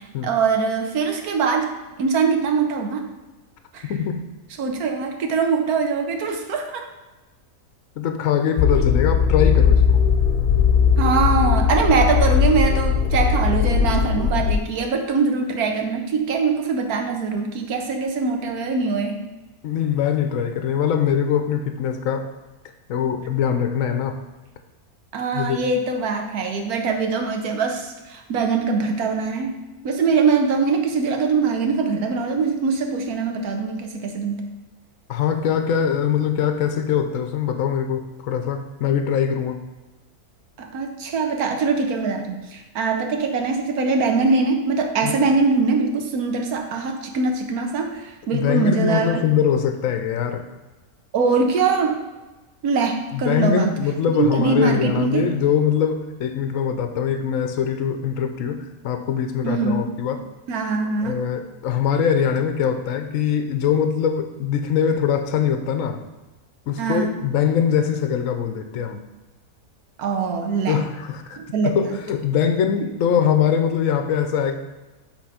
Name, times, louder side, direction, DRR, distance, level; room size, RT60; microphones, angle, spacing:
voice 1, 0.0-1.7 2.0-3.0 3.7-3.9 4.6-6.8 11.0-19.2 25.1-29.6 29.8-34.5 40.6-49.2 51.1-52.0 52.6-53.7 54.2-55.3 59.4-60.0 60.5-61.2 66.8-67.1 70.0-70.8 71.4-72.0 72.8-72.9, right 4 dB, 80° right, 4 dB, 1.3 m, -22 dB
voice 2, 3.8-4.2 8.0-10.0 19.6-22.3 22.9-24.2 25.3-25.7 35.1-39.6 45.0-45.1 48.3-50.5 53.1-60.2 61.0-66.0 66.7-69.0 70.7-71.4 71.6-74.6, left 8 dB, 70° left, 7 dB, 0.9 m, -22 dB
sound 1, 8.6-14.6, left 6 dB, 85° left, 1.2 m, -18 dB
8.0 x 3.3 x 4.9 m, 1.1 s
omnidirectional pair, 1.6 m